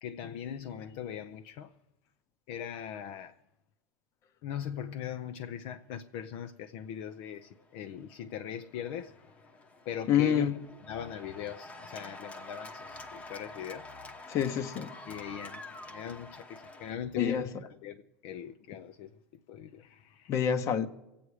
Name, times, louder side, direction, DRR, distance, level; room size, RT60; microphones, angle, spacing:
voice 1, 0.0-1.7 2.5-3.4 4.4-9.6 9.8-10.5 10.9-14.4 15.1-17.5 17.8-19.2 19.5-20.3, left 9 dB, 60° left, 0.6 m, -40 dB
Cheering / Applause, 7.3-16.9, left 2 dB, 20° left, 1.0 m, -48 dB
voice 2, 10.1-10.5 14.3-15.0 17.2-17.5 20.3-20.9, left 8 dB, 40° left, 0.9 m, -27 dB
23.5 x 8.5 x 4.8 m
supercardioid pair, 140°, 7 cm